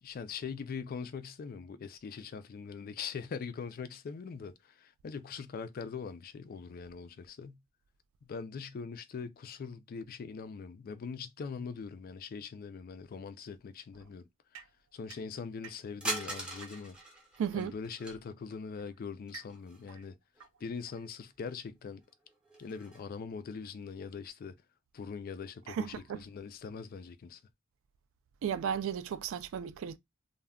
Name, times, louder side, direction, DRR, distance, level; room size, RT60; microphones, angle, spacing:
voice 1, 0.0-7.6 8.2-14.3 14.9-17.0 17.5-20.2 20.6-22.0 22.6-24.6 24.9-27.4, left 5 dB, 45° left, 0.3 m, -42 dB
sound 1, 14.5-17.1 18.2-21.5, right 7 dB, 85° right, 0.7 m, -54 dB
sound 2, 16.0-18.2 19.3-20.0 20.4-20.5 21.4-21.5 22.0-23.0, right 1 dB, 5° right, 0.7 m, -41 dB
voice 2, 17.4-17.8 25.7-26.2 28.4-30.0, right 8 dB, 65° right, 0.3 m, -34 dB
2.2 x 2.1 x 3.4 m
head